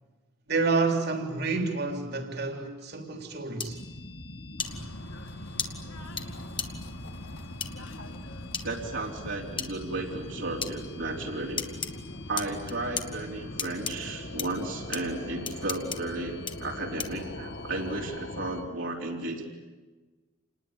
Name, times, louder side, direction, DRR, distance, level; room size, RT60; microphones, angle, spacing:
voice 1, 0.5-3.8, right 3 dB, 55° right, 3.5 m, -29 dB
sound 1, 3.6-18.6, left 1 dB, 55° left, 1.6 m, -42 dB
sound 2, 3.6-3.7 4.6-4.7 5.6-5.7 6.2-6.3 6.6-6.7 7.6-7.7 8.5-8.7 9.6-9.7 10.6-10.7 11.6-11.9 12.4-13.1 13.6-13.9 14.4-14.5 14.9-15.0 15.5-16.0 16.5-16.6 17.0-17.2, left 6 dB, 25° left, 1.6 m, -32 dB
Bird / Train, 4.6-18.0, left 1 dB, 90° left, 2.9 m, -46 dB
voice 2, 8.6-11.6 12.3-19.4, right 2 dB, 70° right, 4.0 m, -34 dB
28.5 x 20.0 x 9.0 m
head